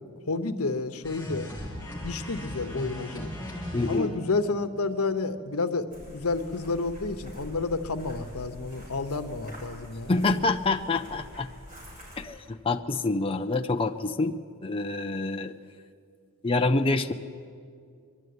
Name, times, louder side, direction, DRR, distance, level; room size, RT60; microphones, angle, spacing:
voice 1, 0.3-1.5 2.0-3.3 3.9-10.1, left 3 dB, 90° left, 9 dB, 1.0 m, -30 dB
sound 1, 1.0-4.4, left 1 dB, 10° left, 4.0 m, -37 dB
voice 2, 3.7-4.1 10.1-11.5 12.2-14.3 14.6-15.5 16.4-17.1, left 3 dB, 25° left, 6 dB, 0.5 m, -26 dB
sound 2, 5.9-12.2, equal, 35° right, 6.0 m, -45 dB
22.5 x 12.0 x 9.5 m, 2.2 s
head